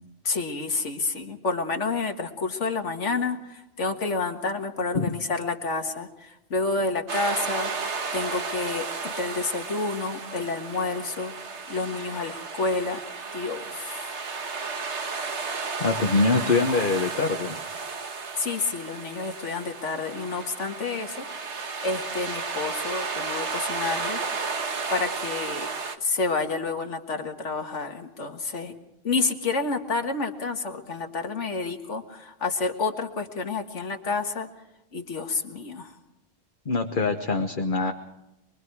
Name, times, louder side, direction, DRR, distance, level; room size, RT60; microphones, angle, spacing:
voice 1, 0.2-7.7 8.1-11.3 11.7-13.0 13.3-14.1 18.4-21.3 21.8-24.2 24.9-25.7 26.0-28.7 29.0-34.5 34.9-35.9, left 3 dB, 70° left, 5 dB, 2.0 m, -29 dB
sound 1, 7.1-25.9, right 4 dB, 65° right, 1.7 m, -33 dB
voice 2, 15.8-17.6 36.6-37.9, left 3 dB, 45° left, 4 dB, 1.3 m, -24 dB
24.0 x 23.5 x 4.7 m, 0.92 s
omnidirectional pair, 1.3 m